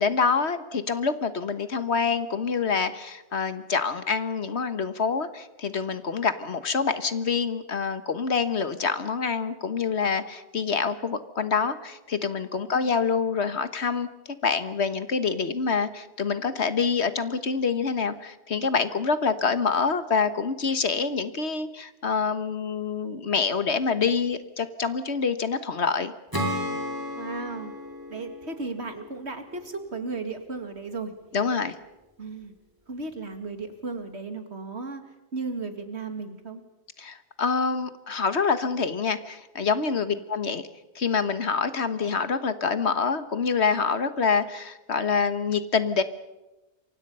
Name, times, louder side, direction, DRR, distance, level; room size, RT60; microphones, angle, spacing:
voice 1, 0.0-14.1 14.4-26.1 31.3-31.8 37.0-40.6 40.9-46.0, left 5 dB, 65° left, 11 dB, 1.6 m, -26 dB
Acoustic guitar / Strum, 26.3-29.8, equal, 15° right, 4.1 m, -33 dB
voice 2, 27.2-27.7 28.1-31.1 32.2-32.5 32.9-36.6 40.1-40.2, right 3 dB, 65° right, 7 dB, 2.6 m, -35 dB
28.0 x 24.5 x 5.6 m, 1.0 s
omnidirectional pair, 1.2 m